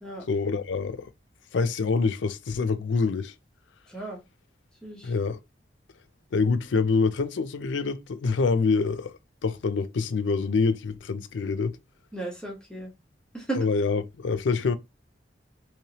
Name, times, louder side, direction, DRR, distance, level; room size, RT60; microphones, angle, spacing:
voice 1, 0.3-1.1 1.5-3.3 5.0-5.4 6.3-9.1 9.4-11.8 13.6-14.8, left 4 dB, 80° left, 0.4 m, -26 dB
voice 2, 3.9-4.2 4.8-5.1 12.1-12.9 13.3-13.7, right 2 dB, 5° left, 1.0 m, -35 dB
3.2 x 3.0 x 2.8 m
head